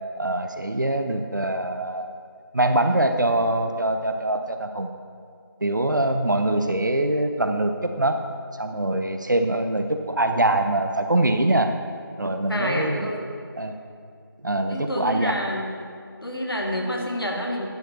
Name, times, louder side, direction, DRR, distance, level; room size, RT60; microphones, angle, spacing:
voice 1, 0.2-2.1 2.5-4.9 5.6-8.2 8.6-11.7 12.2-13.1 13.6-13.7 14.4-15.4, right 1 dB, 55° right, 7 dB, 0.5 m, -23 dB
voice 2, 12.5-13.3 14.6-15.8 16.2-17.7, equal, 75° left, 0 dB, 1.6 m, -28 dB
10.5 x 4.9 x 4.6 m, 2.3 s
figure-of-eight pair, 170°, 12 cm